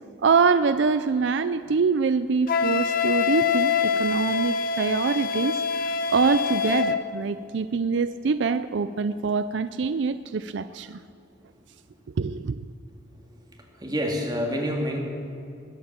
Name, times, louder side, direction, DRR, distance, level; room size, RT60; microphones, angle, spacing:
voice 1, 0.2-5.6 6.1-11.0 12.2-12.6, right 5 dB, 65° right, 12 dB, 0.4 m, -24 dB
Wind instrument woodwind instrument, 2.5-7.0, left 6 dB, 50° left, 0.8 m, -25 dB
voice 2, 13.1-15.0, equal, 20° right, 0 dB, 2.3 m, -29 dB
21.5 x 8.5 x 7.4 m, 2.7 s
head